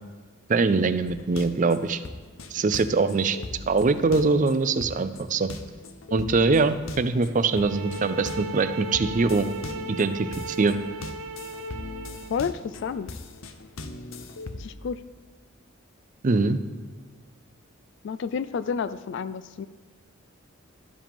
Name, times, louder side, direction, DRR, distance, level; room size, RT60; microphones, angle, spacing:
voice 1, 0.5-2.0 2.5-3.4 3.7-5.5 6.1-9.5 9.9-10.8 16.2-16.6, right 3 dB, 40° right, 12 dB, 0.5 m, -23 dB
sound 1, 1.1-8.6 8.9-14.7, left 2 dB, 80° left, 0.7 m, -40 dB
sound 2, 7.4-12.4, right 2 dB, 75° right, 0.8 m, -37 dB
voice 2, 12.3-13.1 14.6-15.0 18.0-19.7, left 6 dB, 60° left, 13 dB, 0.3 m, -30 dB
12.0 x 7.4 x 3.6 m, 1.5 s
head